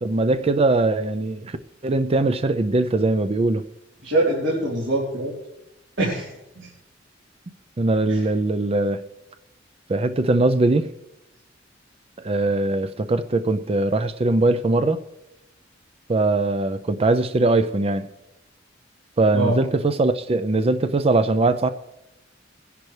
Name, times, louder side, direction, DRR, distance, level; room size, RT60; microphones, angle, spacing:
voice 1, 0.0-1.6 1.8-3.6 7.8-9.0 9.9-10.9 12.2-15.0 16.1-18.1 19.2-21.7, right 2 dB, 30° right, 11 dB, 0.5 m, -21 dB
voice 2, 4.0-5.3 6.0-6.3 6.6-6.7 8.1-8.2 19.3-19.5, right 1 dB, 80° right, -6 dB, 3.7 m, -23 dB
22.5 x 10.5 x 3.3 m, 0.91 s
head